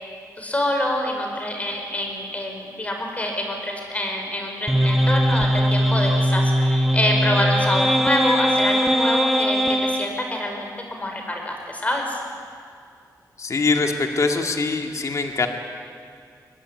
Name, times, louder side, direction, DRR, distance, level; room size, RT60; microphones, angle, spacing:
voice 1, 0.4-12.2, left 1 dB, 20° left, 2 dB, 5.1 m, -26 dB
sound 1, 4.7-10.1, equal, ahead, 1.4 m, -20 dB
voice 2, 13.4-15.5, left 3 dB, 50° left, 4 dB, 2.2 m, -23 dB
24.0 x 19.5 x 9.7 m, 2.2 s
wide cardioid pair, 135°, 7 cm